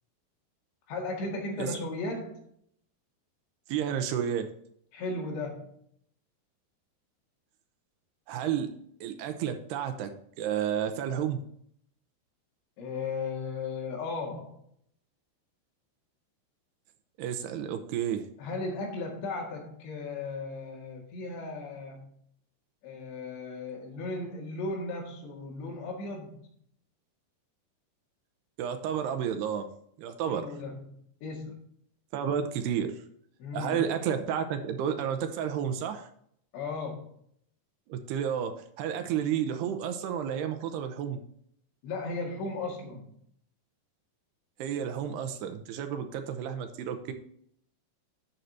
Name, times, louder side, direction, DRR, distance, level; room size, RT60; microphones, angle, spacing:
voice 1, 0.9-2.4 4.9-5.8 12.8-14.6 18.4-22.1 22.8-26.5 30.3-31.6 33.4-33.8 36.5-37.1 41.8-43.1, left 3 dB, 80° left, 0 dB, 4.2 m, -36 dB
voice 2, 3.7-4.5 8.3-8.7 9.0-11.4 17.2-18.3 28.6-29.7 30.0-30.5 32.1-33.0 33.5-36.1 37.9-41.2 44.6-47.1, right 8 dB, 80° right, 8 dB, 2.7 m, -31 dB
11.0 x 7.8 x 2.7 m, 0.66 s
omnidirectional pair, 5.0 m